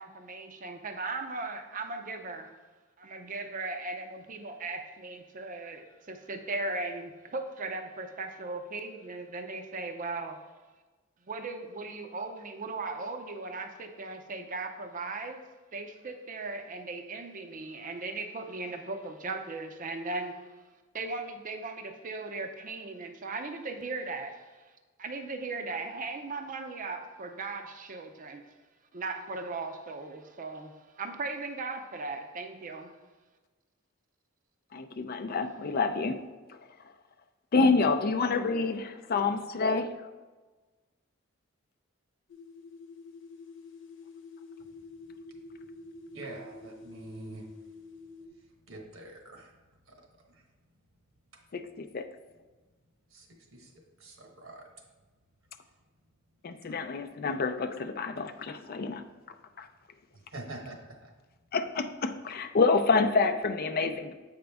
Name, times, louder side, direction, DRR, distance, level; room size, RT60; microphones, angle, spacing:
voice 1, 0.0-2.5 3.0-10.4 11.3-15.4 15.7-20.5 20.9-24.6 25.0-28.4 28.9-32.9, right 3 dB, 40° right, 6 dB, 0.6 m, -38 dB
voice 2, 34.7-36.2 37.5-39.9 51.5-52.1 56.4-59.0 59.6-59.7 61.5-64.1, left 4 dB, 45° left, 9 dB, 0.4 m, -28 dB
sound 1, 42.3-48.3, left 3 dB, 65° left, 0.9 m, -48 dB
voice 3, 46.1-47.4 48.7-49.5 49.9-50.0 50.3-50.4 53.1-53.3 53.5-53.7 54.0-54.7 56.7-56.8 60.3-61.1, right 2 dB, 70° right, 2 dB, 1.2 m, -45 dB
7.8 x 5.1 x 3.4 m, 1.3 s
head